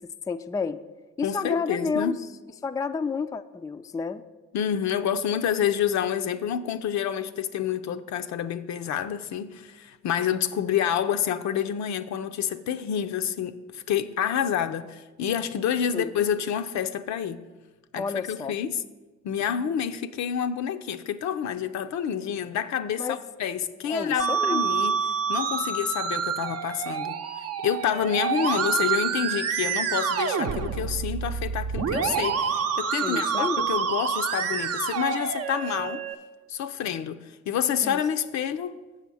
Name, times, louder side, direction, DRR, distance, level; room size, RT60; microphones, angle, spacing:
voice 1, 0.3-0.8 1.2-2.2 2.6-4.2 15.9-16.2 17.9-18.6 23.0-23.2 23.9-24.6 33.0-33.7 37.8-38.0, left 4 dB, 10° left, 0.3 m, -30 dB
voice 2, 1.2-2.1 4.5-17.4 17.9-18.8 19.2-23.1 23.4-25.0 25.3-27.2 27.6-36.0 36.5-38.7, left 9 dB, 65° left, 0.6 m, -28 dB
Musical instrument, 24.2-36.1, right 7 dB, 55° right, 0.7 m, -27 dB
7.3 x 4.9 x 6.9 m
supercardioid pair, 60°, 30 cm